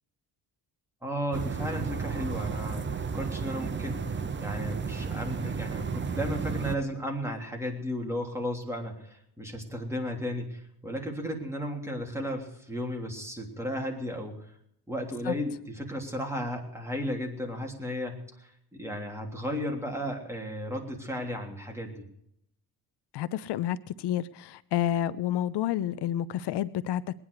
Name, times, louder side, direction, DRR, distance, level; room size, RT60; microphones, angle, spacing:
voice 1, 1.0-4.1 4.4-14.5 14.9-22.1, equal, 5° right, 1 dB, 3.2 m, -34 dB
sound 1, 1.3-6.8, right 5 dB, 30° right, 0.8 m, -33 dB
voice 2, 23.1-27.0, left 11 dB, 75° left, 16 dB, 0.7 m, -29 dB
21.0 x 9.9 x 4.8 m, 0.75 s
cardioid pair, 125°, 41 cm